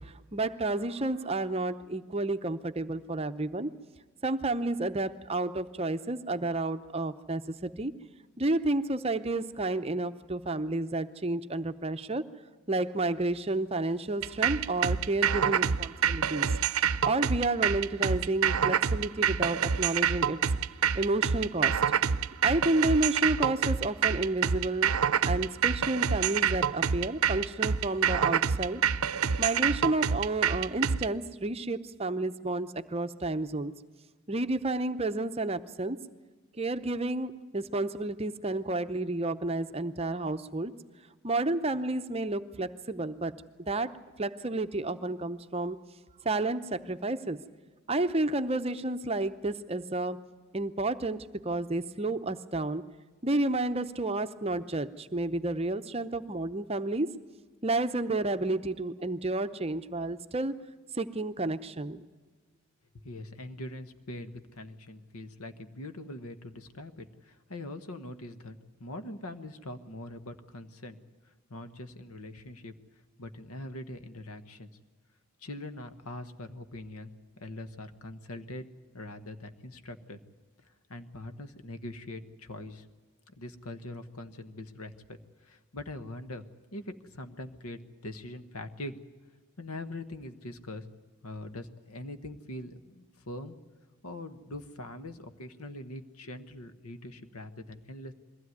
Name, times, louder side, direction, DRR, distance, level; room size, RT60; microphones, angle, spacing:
voice 1, 0.0-3.7 4.2-7.9 8.4-12.2 12.7-16.5 17.0-20.4 20.9-21.8 22.4-24.9 25.3-28.8 29.4-33.7 34.3-36.0 36.6-40.7 41.2-43.3 43.6-45.8 46.2-47.4 47.9-50.3 50.5-52.8 53.2-57.1 57.6-60.5 60.9-62.0, right 2 dB, 25° right, 10 dB, 0.7 m, -31 dB
sound 1, 14.2-31.1, right 7 dB, 75° right, 0.6 m, -27 dB
voice 2, 63.0-71.0 71.5-72.7 73.2-74.7 75.4-77.1 77.4-78.6 78.9-80.2 80.9-82.8 83.3-85.2 85.4-86.4 86.7-89.0 89.6-90.8 91.2-93.5 94.0-98.1, left 1 dB, 90° left, 9 dB, 1.3 m, -42 dB
22.0 x 16.0 x 9.5 m, 1.3 s
head